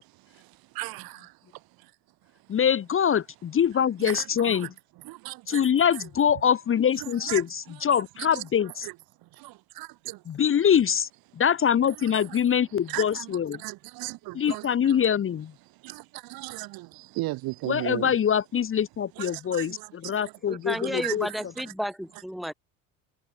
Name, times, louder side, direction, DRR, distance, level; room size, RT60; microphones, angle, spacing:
voice 1, 0.0-1.9 4.0-4.7 5.0-5.6 5.9-6.0 7.0-7.4 7.9-8.0 8.3-8.4 8.8-8.9 9.2-10.2 12.0-12.4 12.9-15.0 15.8-18.1 19.2-21.4 22.4-22.5, right 20 dB, 55° right, 1.5 m, -37 dB
voice 2, 2.5-4.7 5.5-8.9 10.3-13.6 14.3-15.5 17.7-21.3, left 8 dB, 30° left, 1.0 m, -24 dB
voice 3, 20.5-22.5, equal, ahead, 2.1 m, -32 dB
hypercardioid pair, 60°, 42 cm